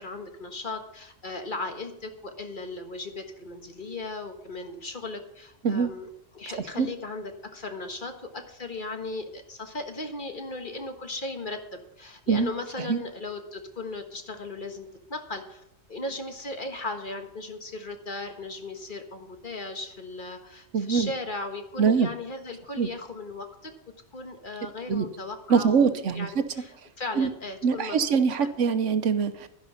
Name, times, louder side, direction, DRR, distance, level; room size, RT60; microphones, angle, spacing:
voice 1, 0.0-15.6 15.9-26.7 27.0-28.5, left 2 dB, 45° left, 5 dB, 1.6 m, -37 dB
voice 2, 20.7-21.1 21.8-22.1 22.8-22.9 24.9-25.1 25.5-26.5 27.2-27.3 27.6-29.5, right 6 dB, 80° right, 11 dB, 1.2 m, -23 dB
12.0 x 11.0 x 5.6 m, 0.78 s
omnidirectional pair, 1.3 m